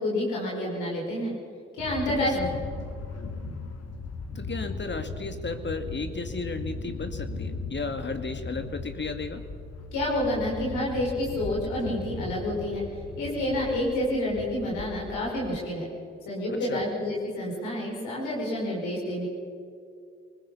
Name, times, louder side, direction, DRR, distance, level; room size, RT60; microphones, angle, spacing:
voice 1, 0.0-1.3 1.8-2.4 9.9-12.8 13.2-15.9 16.3-19.3, left 1 dB, 80° left, -4 dB, 5.4 m, -29 dB
sound 1, 1.8-15.6, left 4 dB, 55° left, 2.1 m, -38 dB
voice 2, 2.1-2.5 4.3-9.4 16.5-16.8, left 3 dB, 35° left, 8 dB, 2.2 m, -34 dB
24.5 x 20.5 x 5.8 m, 2.3 s
hypercardioid pair, 45°, 30 cm